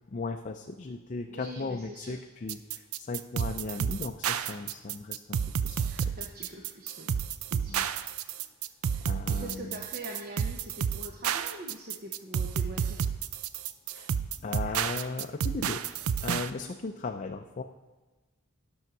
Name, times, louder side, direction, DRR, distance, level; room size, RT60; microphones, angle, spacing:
voice 1, 0.1-6.1 7.7-7.9 9.1-9.7 13.9-14.1 14.4-15.8 16.2-17.6, left 3 dB, 35° left, 4 dB, 0.4 m, -37 dB
voice 2, 1.3-2.2 3.4-3.7 5.8-7.1 7.5-7.9 8.9-13.0 16.6-17.0, right 1 dB, 45° right, 1 dB, 0.8 m, -44 dB
sound 1, 2.5-16.5, right 7 dB, 90° right, 0.4 m, -31 dB
11.0 x 6.3 x 5.9 m, 1.2 s
head